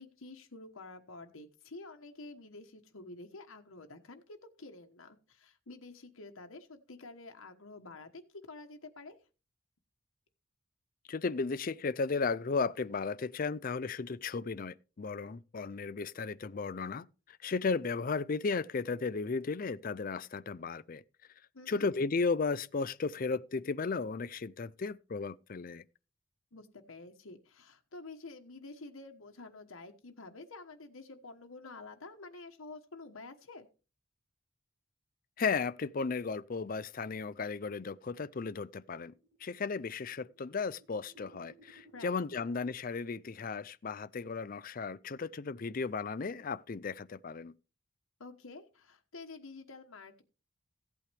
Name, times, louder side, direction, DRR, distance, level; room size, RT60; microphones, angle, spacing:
voice 1, 0.0-8.2 8.5-9.2 21.5-21.9 26.5-33.7 41.9-42.2 48.2-50.2, left 3 dB, 85° left, 1.2 m, -49 dB
voice 2, 11.1-21.0 21.7-25.8 35.4-39.1 39.4-47.5, left 4 dB, 45° left, 0.5 m, -35 dB
sound 1, 38.0-42.5, right 3 dB, 55° right, 1.8 m, -62 dB
15.5 x 8.5 x 3.4 m
head